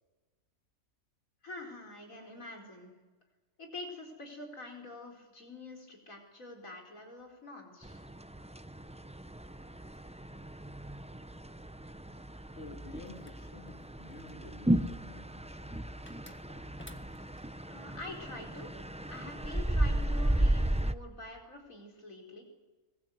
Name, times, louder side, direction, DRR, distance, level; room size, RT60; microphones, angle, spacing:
voice 1, 1.4-2.9 3.6-8.0 17.7-18.7 19.1-22.4, left 2 dB, 90° left, 1 dB, 4.7 m, -46 dB
sound 1, 7.8-20.9, right 1 dB, 10° right, 0.4 m, -34 dB
voice 2, 12.6-15.8, left 2 dB, 55° left, 2 dB, 2.7 m, -50 dB
sound 2, 13.1-14.5 16.1-17.5, left 1 dB, 10° left, 1.2 m, -55 dB
25.0 x 21.0 x 8.0 m, 1.3 s
omnidirectional pair, 1.4 m